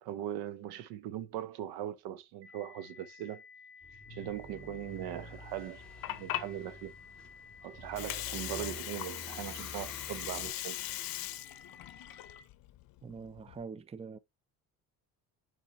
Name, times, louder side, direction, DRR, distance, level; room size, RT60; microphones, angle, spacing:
voice 1, 0.0-3.4 3.9-5.8 6.1-6.9 7.6-10.8, right 11 dB, 85° right, 0.8 m, -40 dB
sound 1, 2.4-12.4, left 6 dB, 70° right, 2.6 m, -54 dB
sound 2, 3.8-10.5, left 1 dB, ahead, 2.4 m, -49 dB
Water, 5.7-13.6, left 15 dB, 65° left, 0.6 m, -40 dB
voice 2, 13.0-14.2, right 5 dB, 15° right, 0.5 m, -44 dB
7.1 x 4.5 x 2.9 m
cardioid pair, 95°, 38 cm